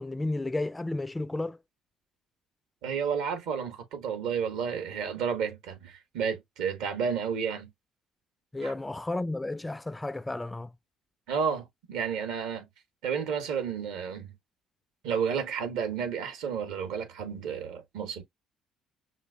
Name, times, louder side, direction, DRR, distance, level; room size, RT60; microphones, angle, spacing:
voice 1, 0.0-1.6 8.5-10.7, left 2 dB, 15° left, 0.3 m, -32 dB
voice 2, 2.8-7.7 8.6-8.7 11.3-12.7 13.0-14.3 15.0-18.2, right 7 dB, 70° right, 1.2 m, -31 dB
5.8 x 2.6 x 2.3 m
hypercardioid pair, 50°, 0 cm